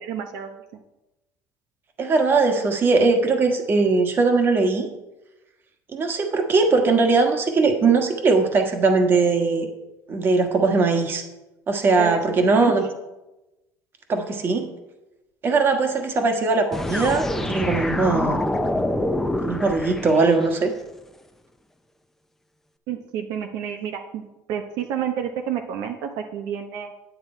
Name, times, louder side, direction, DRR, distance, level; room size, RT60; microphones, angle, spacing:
voice 1, 0.0-0.6 12.0-12.2 12.4-12.7 22.9-26.9, right 9 dB, 70° right, 5 dB, 0.8 m, -30 dB
voice 2, 2.0-4.9 5.9-9.7 10.1-11.2 11.7-12.8 14.1-14.7 15.4-18.4 19.4-20.7, right 3 dB, 35° right, 5 dB, 1.4 m, -20 dB
sound 1, 16.7-20.7, left 1 dB, 5° left, 0.6 m, -26 dB
9.4 x 9.1 x 4.4 m, 1.0 s
cardioid pair, 140°, 7 cm